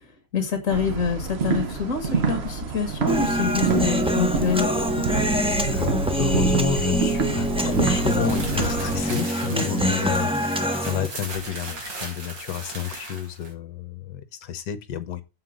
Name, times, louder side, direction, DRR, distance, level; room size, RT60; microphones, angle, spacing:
voice 1, 0.3-4.7 9.5-9.9, left 5 dB, 45° left, 1.9 m, -26 dB
sound 1, 0.7-9.0, right 4 dB, 45° right, 0.9 m, -27 dB
Human voice, 3.1-11.1, equal, 5° right, 0.6 m, -24 dB
voice 2, 5.7-15.2, left 8 dB, 65° left, 1.5 m, -30 dB
sound 2, 7.7-13.5, right 3 dB, 65° right, 3.2 m, -38 dB
7.9 x 5.8 x 6.2 m
omnidirectional pair, 2.1 m